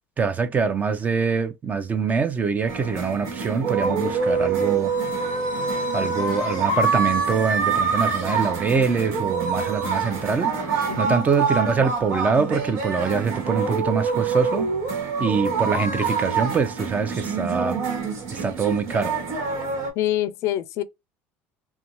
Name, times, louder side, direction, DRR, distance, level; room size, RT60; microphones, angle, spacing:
voice 1, 0.2-4.9 5.9-10.5 11.0-14.7 15.2-17.8 18.3-19.1, right 5 dB, 30° right, 0.6 m, -24 dB
sound 1, 2.7-19.9, right 4 dB, 70° right, 1.3 m, -25 dB
voice 2, 10.9-11.3 20.0-20.8, left 13 dB, 65° left, 0.4 m, -26 dB
2.5 x 2.2 x 2.9 m
supercardioid pair, 105°, 5 cm